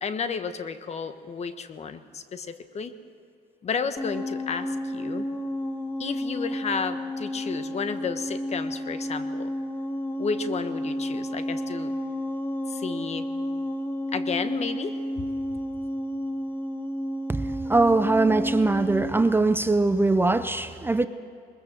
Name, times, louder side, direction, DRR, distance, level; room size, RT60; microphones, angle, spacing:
voice 1, 0.0-2.9 3.6-5.3 6.0-9.5 10.2-11.9 12.7-13.3 14.1-15.3, left 5 dB, 40° left, 10 dB, 1.3 m, -32 dB
sound 1, 4.0-19.3, equal, 10° left, 1.2 m, -31 dB
voice 2, 17.7-21.1, right 3 dB, 15° right, 11 dB, 0.6 m, -21 dB
21.0 x 21.0 x 7.5 m, 2.4 s
cardioid pair, 110°, 17 cm